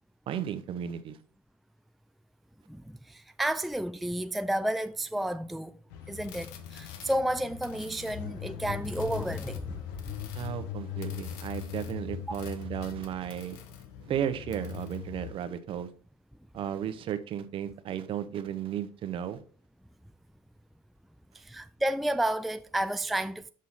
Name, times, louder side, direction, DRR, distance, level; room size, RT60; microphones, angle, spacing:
voice 1, 0.3-1.2 10.3-13.6 14.1-15.9 16.5-19.4, right 9 dB, 50° right, 0.9 m, -34 dB
voice 2, 2.7-5.7 6.1-10.1 21.3-23.5, right 1 dB, ahead, 0.3 m, -31 dB
sound 1, 5.9-15.3, left 10 dB, 85° left, 1.0 m, -40 dB
6.4 x 5.5 x 4.1 m
supercardioid pair, 85°, 11 cm